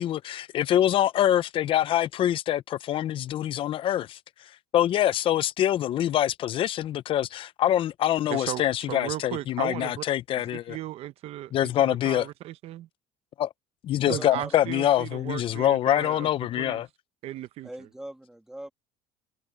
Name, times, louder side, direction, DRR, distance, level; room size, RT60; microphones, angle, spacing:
voice 1, 0.0-4.2 4.7-10.8 11.5-12.3 13.4-13.5 13.8-16.9, left 12 dB, 45° left, 0.8 m, -25 dB
voice 2, 8.3-10.0 10.3-12.9 14.1-16.3 16.6-16.8 17.2-17.7, right 14 dB, 55° right, 0.9 m, -36 dB
voice 3, 14.1-16.1 17.6-18.7, right 1 dB, 5° right, 2.6 m, -43 dB
cardioid pair, 125°, 12 cm